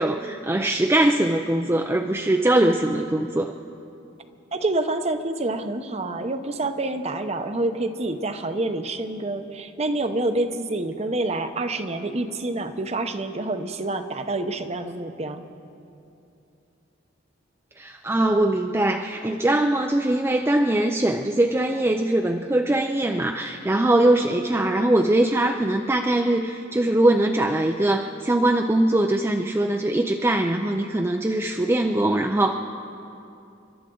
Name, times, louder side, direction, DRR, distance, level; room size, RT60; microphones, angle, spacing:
voice 1, 0.0-3.5 17.8-32.5, right 1 dB, 15° right, 3 dB, 0.4 m, -22 dB
voice 2, 4.5-15.4, right 2 dB, 35° right, 9 dB, 0.7 m, -27 dB
29.5 x 12.0 x 3.8 m, 2.7 s
head